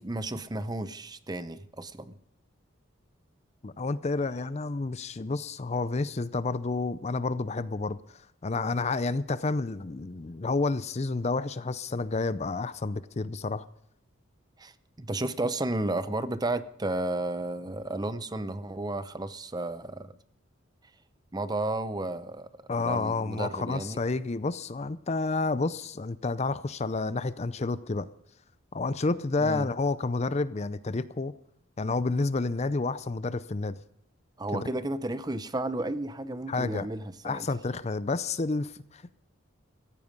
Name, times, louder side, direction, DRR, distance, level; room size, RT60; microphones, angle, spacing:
voice 1, 0.0-2.1 14.6-14.7 15.0-20.1 21.3-22.5 22.8-24.0 29.4-29.7 34.4-37.5, right 2 dB, 20° right, 13 dB, 0.7 m, -32 dB
voice 2, 3.6-13.6 22.7-28.1 28.7-31.3 31.8-33.8 34.5-34.7 36.5-36.9 37.2-39.2, left 3 dB, 35° left, 15 dB, 0.5 m, -30 dB
17.0 x 15.0 x 5.3 m, 0.72 s
head